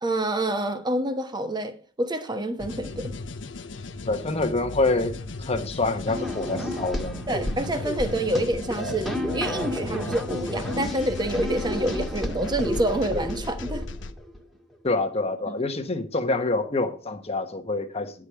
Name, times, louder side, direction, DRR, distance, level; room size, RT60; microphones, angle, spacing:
voice 1, 0.0-3.2 7.3-13.9 15.5-15.6, right 1 dB, 20° right, 1.1 m, -27 dB
sound 1, 2.6-14.1, left 2 dB, 70° left, 0.8 m, -36 dB
voice 2, 4.0-7.2 14.8-18.1, left 2 dB, 35° left, 1.1 m, -26 dB
sound 2, 6.1-14.4, equal, ahead, 1.6 m, -32 dB
10.0 x 4.9 x 6.9 m
head